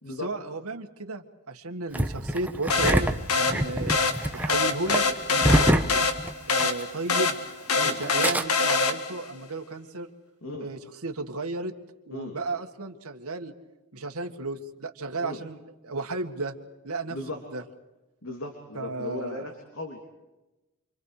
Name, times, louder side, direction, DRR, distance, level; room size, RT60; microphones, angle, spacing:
voice 1, 0.2-3.9 4.3-6.0 6.5-7.4 7.8-10.1 10.6-11.7 12.1-13.5 13.9-16.5 16.8-17.6 18.7-19.5, right 2 dB, 85° right, 4 dB, 2.0 m, -34 dB
Engine starting, 1.9-6.8 7.1-7.2 8.0-8.4, right 1 dB, 10° right, 1.0 m, -25 dB
sound 1, 2.7-9.3, left 4 dB, 80° left, 1.9 m, -25 dB
voice 2, 18.2-20.1, left 2 dB, 65° left, 2 dB, 3.1 m, -36 dB
29.0 x 25.5 x 5.0 m, 1.0 s
head